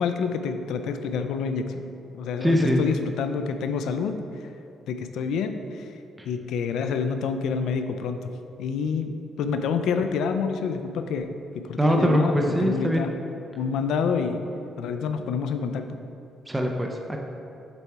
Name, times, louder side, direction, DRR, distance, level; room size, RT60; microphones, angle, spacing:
voice 1, 0.0-1.9 2.1-4.2 4.9-5.8 6.3-8.3 8.6-13.1 13.6-14.4 14.8-15.9, left 5 dB, 75° left, 8 dB, 0.4 m, -28 dB
voice 2, 2.4-2.8 6.2-6.3 11.8-13.0 16.5-17.2, equal, 10° right, 1 dB, 0.4 m, -22 dB
6.8 x 4.3 x 4.6 m, 2.7 s
cardioid pair, 175°, 0 cm